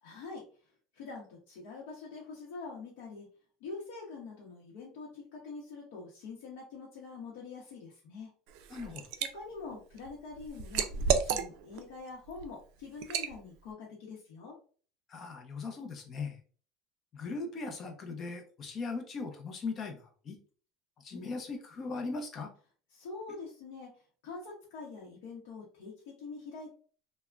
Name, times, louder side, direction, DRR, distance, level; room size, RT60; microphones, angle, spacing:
voice 1, 0.0-3.3 3.6-8.3 9.2-14.6 22.9-26.7, left 4 dB, 80° left, -4 dB, 0.7 m, -45 dB
Liquid, 8.5-9.3 9.7-11.8 12.3-12.5 13.0-13.3, right 7 dB, 65° right, 0.3 m, -31 dB
voice 2, 8.7-9.1 15.1-16.4 17.1-20.4 21.0-22.5, left 4 dB, 30° left, 5 dB, 0.5 m, -39 dB
3.3 x 2.1 x 2.3 m, 0.42 s
cardioid pair, 150°, 0 cm